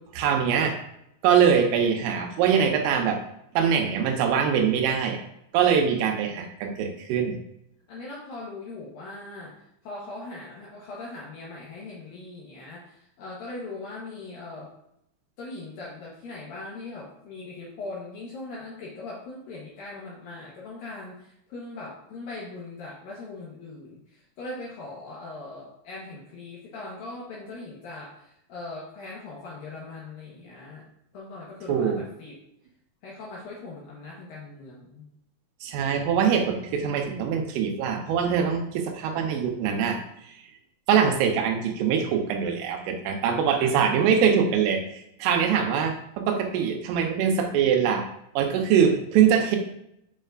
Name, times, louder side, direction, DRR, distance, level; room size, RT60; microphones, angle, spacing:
voice 1, 0.1-0.8 1.2-3.2 3.6-5.2 5.5-7.4 31.7-32.0 35.6-40.0 40.9-48.1 48.4-49.6, right 7 dB, 90° right, 3 dB, 3.4 m, -23 dB
voice 2, 7.9-9.5 9.8-14.7 15.4-30.9 31.1-32.3 33.0-35.1 43.5-44.1, left 2 dB, 70° left, -5 dB, 2.2 m, -40 dB
8.4 x 5.5 x 2.5 m, 0.78 s
omnidirectional pair, 5.6 m